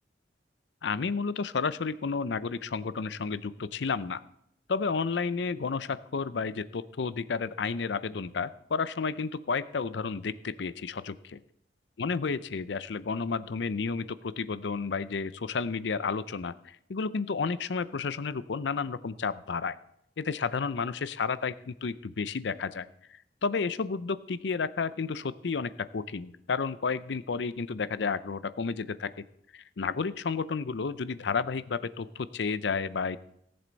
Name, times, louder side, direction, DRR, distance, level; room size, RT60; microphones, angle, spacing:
voice 1, 0.8-4.2 4.7-11.4 12.0-19.8 20.2-22.9 23.4-29.2 29.5-33.2, left 5 dB, 70° left, 16 dB, 0.5 m, -31 dB
17.5 x 7.8 x 4.0 m, 0.76 s
head